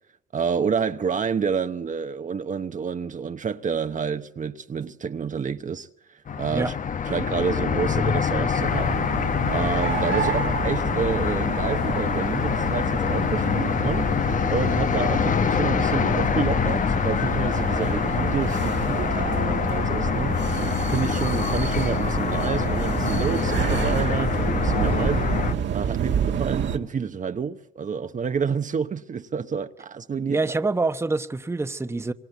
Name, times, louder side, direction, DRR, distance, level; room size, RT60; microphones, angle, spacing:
voice 1, 0.3-6.8 7.1-9.0 9.5-30.4, right 6 dB, 40° right, 1.0 m, -29 dB
sound 1, 6.3-25.5, left 7 dB, 40° left, 0.9 m, -25 dB
sound 2, 8.6-26.8, right 8 dB, 65° right, 1.7 m, -29 dB
voice 2, 30.2-32.1, right 3 dB, 15° right, 1.0 m, -26 dB
25.5 x 24.5 x 8.3 m
cardioid pair, 90°, 20 cm